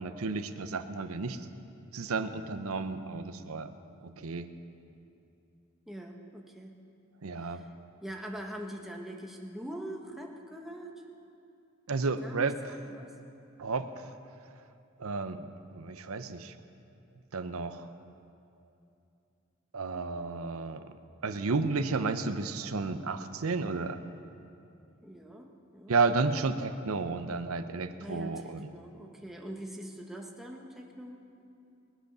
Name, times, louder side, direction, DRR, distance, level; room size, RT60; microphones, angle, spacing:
voice 1, 0.0-1.5 1.9-3.7 4.0-4.6 7.2-7.7 11.9-12.6 13.6-14.1 15.0-16.6 17.3-17.9 19.7-21.0 21.2-24.1 25.9-28.7, right 4 dB, 90° right, 10 dB, 0.7 m, -32 dB
voice 2, 5.8-6.8 7.3-7.7 8.0-10.9 12.2-13.1 25.0-25.9 28.0-31.2, right 1 dB, ahead, 0 dB, 1.2 m, -43 dB
21.0 x 8.0 x 6.8 m, 2.7 s
head